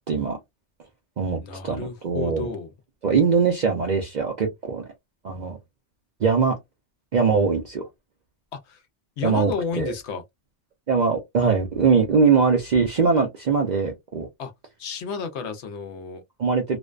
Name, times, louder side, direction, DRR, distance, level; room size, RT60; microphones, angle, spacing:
voice 1, 0.1-0.4 1.2-2.5 3.0-4.8 5.2-5.6 6.2-6.6 7.1-7.8 9.2-9.9 10.9-14.3 16.4-16.8, right 5 dB, 55° right, 0.5 m, -22 dB
voice 2, 1.4-2.7 8.5-8.8 9.2-10.2 14.4-14.5 14.8-16.2, left 5 dB, 70° left, 0.9 m, -31 dB
2.5 x 2.1 x 2.3 m
omnidirectional pair, 1.2 m